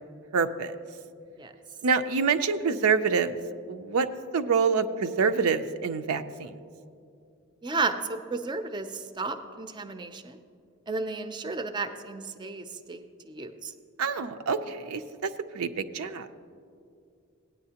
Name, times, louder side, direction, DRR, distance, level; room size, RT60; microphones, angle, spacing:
voice 1, 0.3-0.7 1.8-3.4 3.7-4.1 4.3-6.6 14.0-15.3 15.5-16.3, right 5 dB, 80° right, 9 dB, 0.5 m, -26 dB
voice 2, 7.6-10.4 10.9-13.7, right 3 dB, 20° right, 8 dB, 0.4 m, -33 dB
17.0 x 9.7 x 2.8 m, 2.4 s
head